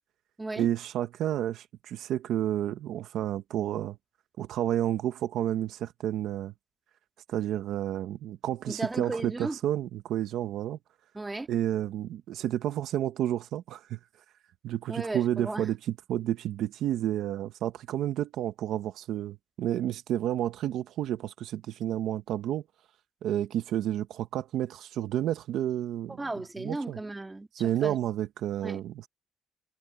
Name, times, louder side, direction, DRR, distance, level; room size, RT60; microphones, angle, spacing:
voice 1, 0.5-4.0 4.4-6.5 7.3-10.8 11.5-14.0 14.6-22.6 23.2-26.2 26.6-27.0 27.5-29.1, right 12 dB, 80° right, 1.1 m, -30 dB
voice 2, 8.7-9.6 11.1-11.5 14.9-15.7 26.2-28.0 28.6-28.8, right 2 dB, 15° right, 2.1 m, -35 dB
cardioid pair, 90°, 0 cm